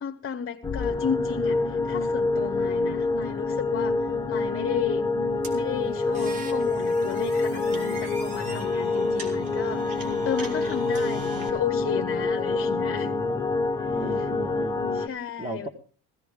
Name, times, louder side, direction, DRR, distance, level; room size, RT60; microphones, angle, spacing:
voice 1, 0.0-5.1 5.5-13.1 13.8-14.3 14.9-15.7, left 8 dB, 35° left, 0.9 m, -33 dB
sound 1, 0.6-15.1, left 3 dB, 10° left, 0.9 m, -27 dB
sound 2, 5.4-11.5, right 2 dB, 90° right, 3.6 m, -41 dB
voice 2, 12.5-13.6 13.9-14.8 15.4-15.7, right 2 dB, 15° right, 1.4 m, -38 dB
16.5 x 15.0 x 3.6 m
cardioid pair, 135°, 40 cm